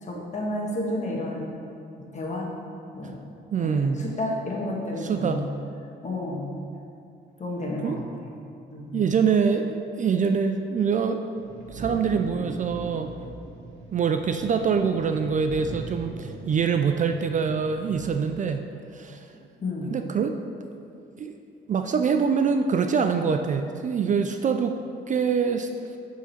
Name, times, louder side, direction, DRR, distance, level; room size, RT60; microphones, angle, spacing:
voice 1, 0.0-1.5 2.1-2.5 2.9-3.2 3.6-5.5 6.0-6.5 7.4-8.0 8.7-9.0 19.6-19.9, left 1 dB, 35° left, -2 dB, 1.4 m, -31 dB
voice 2, 3.5-4.0 5.0-5.5 7.8-8.0 8.9-11.2 11.7-13.1 13.9-18.6 18.9-19.3 19.9-20.4 21.2-21.4 21.7-24.8 25.1-26.0, right 6 dB, 40° right, 6 dB, 0.4 m, -24 dB
sound 1, 11.4-18.1, right 2 dB, 75° right, 1.0 m, -40 dB
7.2 x 3.7 x 5.7 m, 2.5 s
cardioid pair, 90°, 20 cm